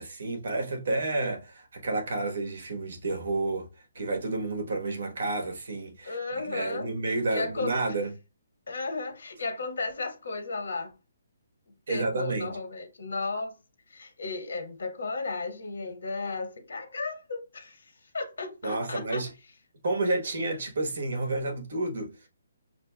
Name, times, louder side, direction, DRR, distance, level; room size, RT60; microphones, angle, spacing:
voice 1, 0.0-3.7 3.9-8.1 11.9-12.6 18.6-19.3 19.8-22.3, right 2 dB, 55° right, 1.1 m, -30 dB
voice 2, 6.0-6.9 7.3-7.8 8.7-10.9 11.9-13.5 13.9-17.8 18.1-19.2, left 3 dB, 70° left, 1.3 m, -34 dB
5.8 x 2.6 x 2.2 m
hypercardioid pair, 175°, 0 cm